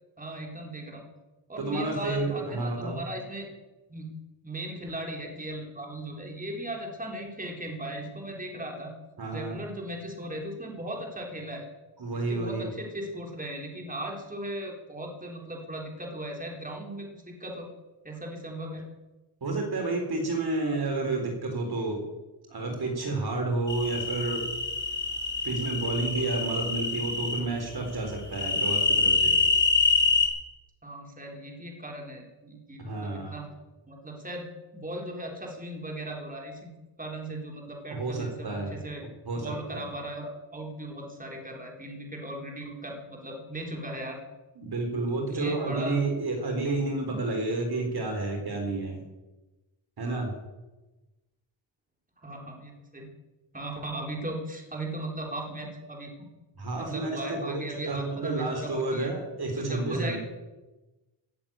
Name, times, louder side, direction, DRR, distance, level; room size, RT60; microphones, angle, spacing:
voice 1, 0.2-1.1 1.5-3.5 3.9-4.1 4.4-8.9 9.3-11.7 12.1-17.7 18.0-18.9 30.8-33.5 33.9-34.5 34.7-36.7 37.0-39.0 39.3-44.2 45.2-46.0 52.2-53.1 53.5-56.1 56.8-59.1 59.5-60.2, right 1 dB, 15° right, 0 dB, 4.0 m, -37 dB
voice 2, 1.6-3.0 9.2-9.6 12.0-12.7 19.4-22.0 22.5-24.4 25.4-29.4 32.8-33.4 37.9-38.8 39.3-39.9 44.6-49.0 50.0-50.3 56.6-60.2, right 2 dB, 50° right, 2 dB, 3.9 m, -30 dB
sound 1, 23.7-27.4 28.3-30.3, left 4 dB, 25° left, 3.2 m, -26 dB
16.5 x 7.9 x 8.8 m, 1.1 s
cardioid pair, 85°, 49 cm